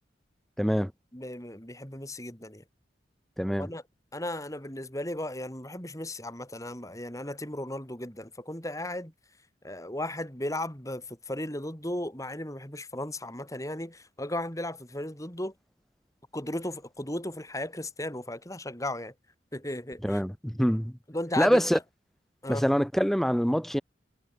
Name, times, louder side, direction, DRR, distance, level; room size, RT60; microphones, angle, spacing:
voice 1, 0.6-0.9 3.4-3.7 20.0-20.9 21.4-21.8 22.5-23.8, equal, ahead, 1.3 m, -25 dB
voice 2, 1.1-2.6 3.5-3.8 4.1-9.1 9.6-15.5 16.3-19.1 19.5-20.2 21.1-21.6 22.4-22.7, left 1 dB, 20° left, 6.7 m, -35 dB
head